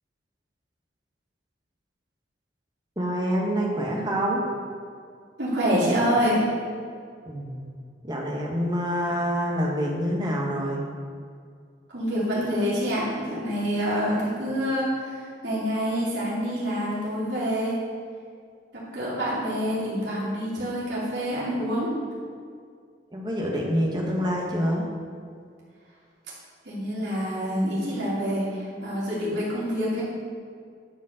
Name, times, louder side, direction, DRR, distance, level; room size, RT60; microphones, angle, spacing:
voice 1, 3.0-4.4 7.3-7.7 8.0-10.8 23.1-24.8, equal, 25° right, -2 dB, 1.7 m, -26 dB
voice 2, 5.4-6.5 11.9-17.8 18.7-21.9 26.6-30.0, equal, 80° right, -8 dB, 3.0 m, -26 dB
11.0 x 5.5 x 6.7 m, 2.2 s
head